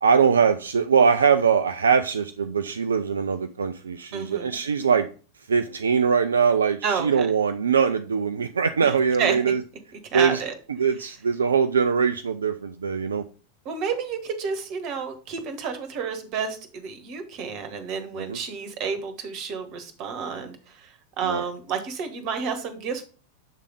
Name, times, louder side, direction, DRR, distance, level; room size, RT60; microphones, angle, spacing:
voice 1, 0.0-5.1 5.5-9.6 10.1-10.4 10.8-13.2 18.1-18.4 21.2-21.4, right 6 dB, 70° right, 9 dB, 0.3 m, -22 dB
voice 2, 4.1-4.6 6.8-7.3 8.8-8.9 9.2-9.4 10.1-10.5 13.6-23.1, right 6 dB, 40° right, 8 dB, 1.2 m, -30 dB
7.4 x 3.4 x 5.0 m, 0.38 s
figure-of-eight pair, 90°, 0 cm